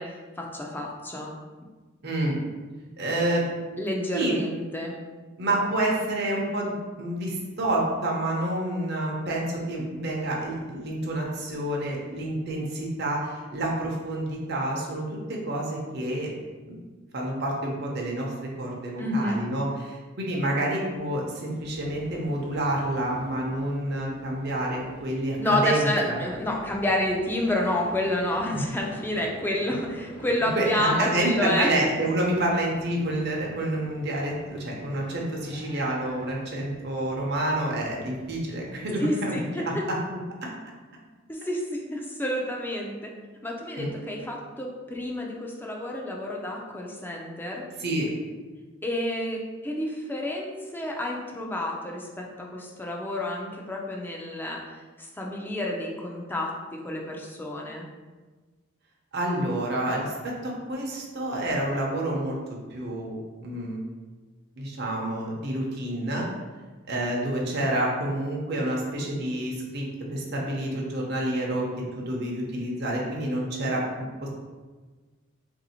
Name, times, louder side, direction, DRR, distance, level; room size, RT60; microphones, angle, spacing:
voice 1, 0.0-1.3 3.8-4.9 19.0-19.4 25.4-31.7 39.0-39.6 41.3-43.0 43.4-47.6 48.8-57.9, left 1 dB, 10° left, -1 dB, 0.4 m, -29 dB
voice 2, 2.0-2.4 3.0-3.4 4.1-4.3 5.4-6.7 7.0-16.3 16.7-16.8 17.1-26.2 28.5-28.7 30.5-39.3 43.8-43.9 47.8-48.1 59.1-62.4 62.7-63.2 63.4-63.8 64.6-66.3 66.9-69.8 70.1-71.7 71.9-74.3, right 1 dB, 55° right, -2 dB, 0.7 m, -28 dB
sound 1, 21.5-39.0, equal, 55° left, 0.9 m, -48 dB
3.4 x 2.7 x 4.2 m, 1.3 s
head